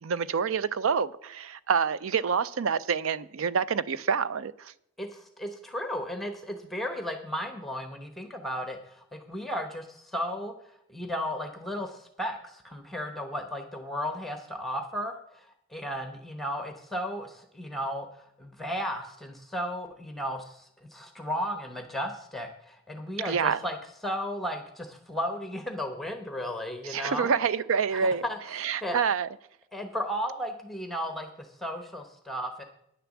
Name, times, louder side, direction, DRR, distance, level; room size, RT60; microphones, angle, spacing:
voice 1, 0.0-4.7 23.2-23.6 26.8-28.2 28.5-29.3, right 6 dB, 70° right, 0.5 m, -27 dB
voice 2, 5.0-10.5 10.9-18.1 18.4-23.8 24.0-27.3 27.9-28.4 28.8-29.0 29.7-32.6, equal, ahead, 0.9 m, -34 dB
9.7 x 6.8 x 7.2 m
head